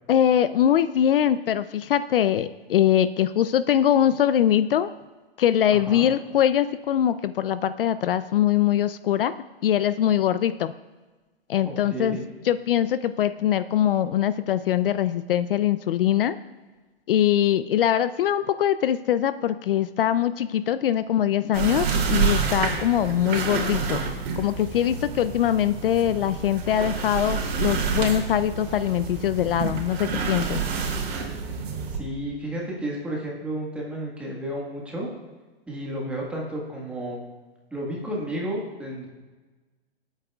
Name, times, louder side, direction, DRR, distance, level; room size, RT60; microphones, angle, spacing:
voice 1, 0.1-4.9 5.4-9.3 9.6-10.7 11.5-12.2 12.4-16.4 17.1-24.0 24.4-30.6, left 10 dB, 60° left, 13 dB, 0.5 m, -22 dB
voice 2, 5.7-6.1 11.6-12.2 31.9-35.1 35.7-37.2 37.7-39.1, right 1 dB, 5° right, -3 dB, 1.5 m, -32 dB
sound 1, 21.5-32.0, right 5 dB, 75° right, 2.8 m, -28 dB
26.5 x 8.9 x 2.3 m, 1.3 s
hypercardioid pair, 170°, 31 cm